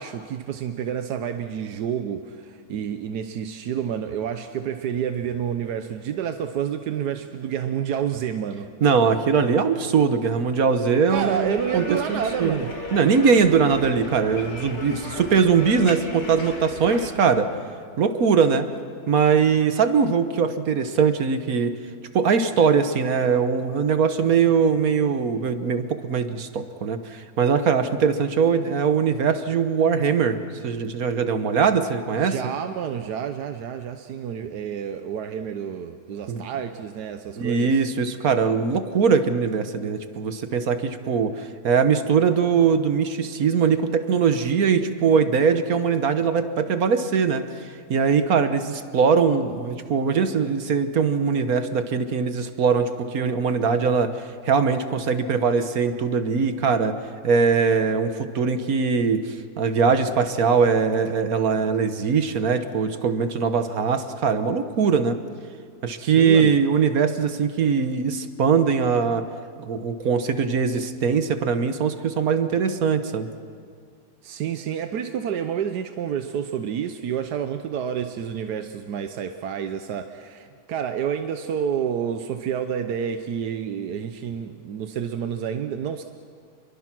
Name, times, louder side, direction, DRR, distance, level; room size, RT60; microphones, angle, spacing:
voice 1, 0.0-8.7 11.1-12.7 32.1-37.8 66.0-66.5 74.2-86.0, right 8 dB, 90° right, 7 dB, 1.4 m, -29 dB
voice 2, 8.8-12.6 12.9-17.5 18.0-18.7 19.1-21.7 22.1-32.4 36.3-36.4 37.4-57.0 57.2-65.2 65.8-69.3 69.6-73.3, right 6 dB, 65° right, 9 dB, 1.6 m, -21 dB
sound 1, 11.1-17.1, left 2 dB, 45° left, 2.8 m, -36 dB
28.5 x 22.5 x 6.1 m, 2.1 s
omnidirectional pair, 1.7 m